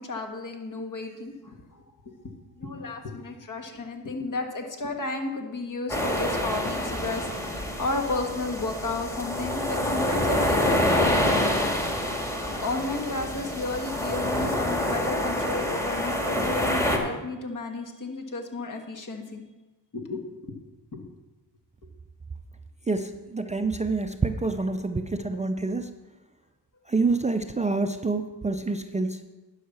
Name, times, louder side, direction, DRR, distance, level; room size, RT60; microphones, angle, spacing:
voice 1, 0.0-2.2 2.6-11.2 12.6-19.4 19.9-20.6 20.9-21.0, left 3 dB, 50° left, 4 dB, 1.8 m, -33 dB
sound 1, 5.9-17.0, left 1 dB, 5° left, 1.7 m, -27 dB
voice 2, 22.9-25.9 26.9-29.2, right 3 dB, 20° right, 8 dB, 0.5 m, -27 dB
11.0 x 5.7 x 6.8 m, 1.2 s
cardioid pair, 85°, 40 cm